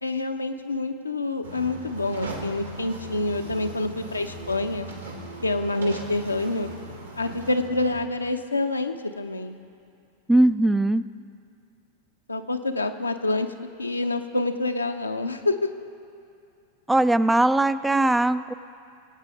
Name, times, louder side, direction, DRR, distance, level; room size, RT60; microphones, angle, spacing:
voice 1, 0.0-4.9 5.4-6.7 7.2-9.6 12.3-13.5 13.8-15.6, left 2 dB, 80° left, 6 dB, 0.7 m, -27 dB
sound 1, 1.4-8.0, right 2 dB, 80° right, 1.9 m, -39 dB
voice 2, 10.3-11.0 16.9-18.5, right 1 dB, 5° right, 14 dB, 0.3 m, -20 dB
23.5 x 8.9 x 3.6 m, 2.5 s
figure-of-eight pair, 90°, 0 cm